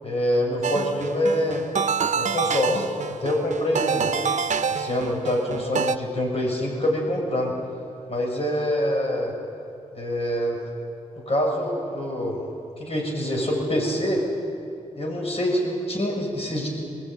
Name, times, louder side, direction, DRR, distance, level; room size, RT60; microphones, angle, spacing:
voice 1, 0.0-1.7 2.1-4.1 4.7-7.5 8.1-9.3 9.9-10.6 11.3-12.4 12.8-14.2 15.0-16.7, left 1 dB, 50° left, -1 dB, 7.2 m, -25 dB
sound 1, 0.6-6.0, right 6 dB, 70° right, 0.8 m, -27 dB
22.0 x 20.5 x 9.4 m, 2.6 s
cardioid pair, 70°, 13 cm